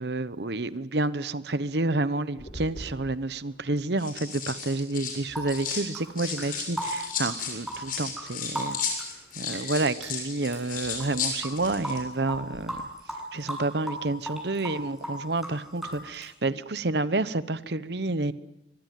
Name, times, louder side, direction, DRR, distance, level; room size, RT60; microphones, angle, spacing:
voice 1, 0.0-8.8 9.4-12.8 13.3-18.3, right 2 dB, 65° right, 15 dB, 1.0 m, -29 dB
sound 1, 2.4-2.9 3.8-5.9 6.2-12.0 12.3-12.6, left 5 dB, 50° left, 7.2 m, -34 dB
sound 2, 5.3-10.1 10.4-16.3, right 1 dB, ahead, 7.8 m, -36 dB
24.0 x 23.5 x 9.3 m, 0.91 s
head